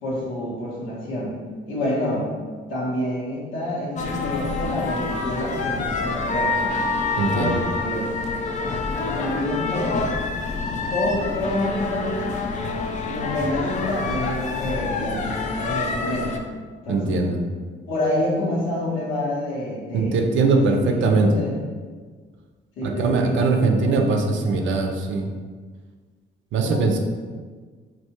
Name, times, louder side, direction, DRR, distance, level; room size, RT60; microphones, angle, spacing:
voice 1, 0.0-1.4 1.7-2.3 2.7-6.6 7.3-8.1 9.2-10.1 10.9-12.2 13.1-16.4 16.8-17.2 17.9-20.2 20.5-21.5 22.8-24.7 26.6-26.9, left 1 dB, 85° left, -6 dB, 1.2 m, -28 dB
sound 1, 4.0-16.4, left 3 dB, 40° left, 0.4 m, -27 dB
voice 2, 7.2-7.6 16.9-17.4 19.9-21.3 22.8-25.3 26.5-27.0, right 3 dB, 75° right, 4 dB, 0.5 m, -21 dB
3.4 x 2.6 x 2.9 m, 1.5 s
cardioid pair, 90°, 20 cm